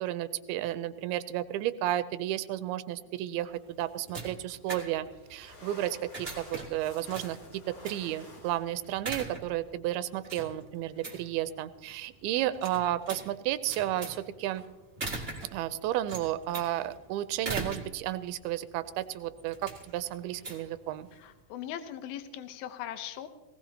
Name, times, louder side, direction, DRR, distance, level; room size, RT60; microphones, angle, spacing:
voice 1, 0.0-14.6 15.5-21.1, right 13 dB, 85° right, 13 dB, 2.5 m, -32 dB
sound 1, 3.4-21.4, right 3 dB, 20° right, 1.8 m, -43 dB
sound 2, 4.7-9.8, left 2 dB, 50° left, 5.6 m, -51 dB
voice 2, 21.1-23.3, left 11 dB, 75° left, 10 dB, 2.7 m, -40 dB
19.0 x 18.5 x 2.9 m, 1.1 s
omnidirectional pair, 4.5 m